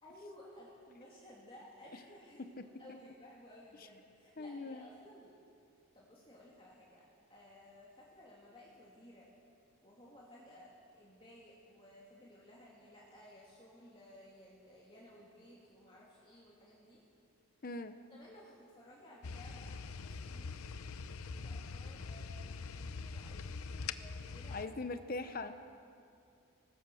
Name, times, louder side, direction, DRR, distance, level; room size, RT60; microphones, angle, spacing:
voice 1, 0.0-5.3 5.9-7.0 7.3-9.3 9.8-17.0 18.1-24.8 25.2-25.5, left 1 dB, 25° left, -5 dB, 2.8 m, -57 dB
voice 2, 2.4-3.0 4.4-4.9 17.6-18.0 24.5-25.5, left 3 dB, 40° left, 9 dB, 0.8 m, -41 dB
sound 1, 19.2-24.7, left 4 dB, 80° left, 0.7 m, -43 dB
24.5 x 19.5 x 6.4 m, 2.5 s
head